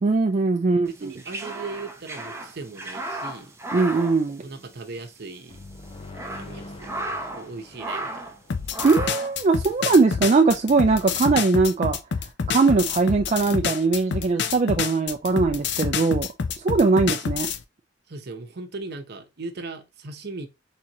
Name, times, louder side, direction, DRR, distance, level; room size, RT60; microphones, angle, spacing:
voice 1, 0.0-1.1 3.7-4.4 8.8-12.0 12.5-16.3 16.6-17.5, right 3 dB, 35° right, 0.4 m, -20 dB
sound 1, 0.9-5.0 5.3-5.4 5.9-7.5 7.8-8.4 8.7-9.4, right 1 dB, 15° right, 0.7 m, -34 dB
voice 2, 0.9-3.5 4.4-5.6 6.3-6.9 7.3-8.3 18.1-20.5, right 3 dB, 60° right, 0.8 m, -38 dB
sound 2, 5.5-9.2, left 2 dB, 30° left, 0.8 m, -44 dB
sound 3, 8.5-17.6, left 6 dB, 65° left, 0.5 m, -27 dB
4.3 x 3.7 x 2.9 m
head